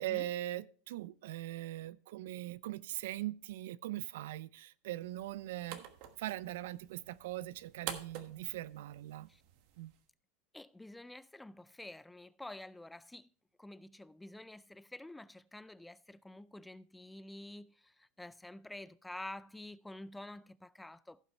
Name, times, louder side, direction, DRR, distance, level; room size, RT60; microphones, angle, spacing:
voice 1, 0.0-5.9 6.2-9.3 9.8-9.9, right 15 dB, 75° right, 0.4 m, -41 dB
sound 1, 5.0-10.0, right 10 dB, 60° right, 1.2 m, -49 dB
voice 2, 10.5-13.3 13.6-21.2, left 1 dB, 5° left, 0.3 m, -49 dB
15.5 x 5.8 x 3.3 m
supercardioid pair, 120°, 0 cm